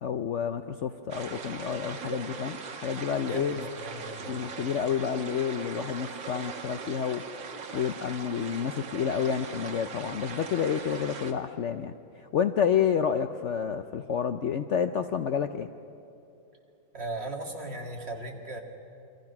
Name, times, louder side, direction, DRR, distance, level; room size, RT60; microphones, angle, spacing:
voice 1, 0.0-3.7 4.3-7.2 7.7-15.7, left 7 dB, 80° left, 8 dB, 0.6 m, -29 dB
sound 1, 1.1-11.3, right 5 dB, 70° right, 2.2 m, -40 dB
voice 2, 3.2-4.4 16.9-18.6, right 2 dB, 30° right, 1 dB, 2.6 m, -37 dB
28.0 x 24.0 x 6.0 m, 2.8 s
omnidirectional pair, 2.1 m